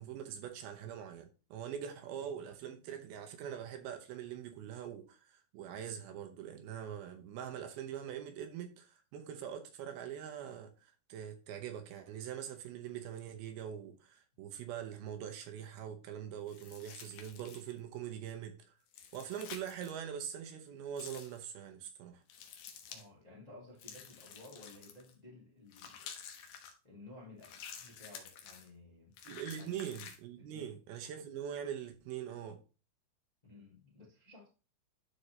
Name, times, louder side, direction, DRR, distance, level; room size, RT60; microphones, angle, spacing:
voice 1, 0.0-18.8 19.1-22.2 29.3-32.6, right 9 dB, 75° right, 2.7 m, -43 dB
sound 1, 16.5-17.8 18.9-20.0 21.0-21.4 22.3-23.1 23.8-25.1 25.7-26.7 27.4-28.7 29.2-30.2, left 8 dB, 75° left, 2.8 m, -50 dB
voice 2, 22.9-26.1 26.8-29.1 29.5-29.8 30.4-30.8 33.4-34.5, left 2 dB, 15° left, 1.3 m, -55 dB
11.5 x 4.3 x 3.2 m
omnidirectional pair, 4.7 m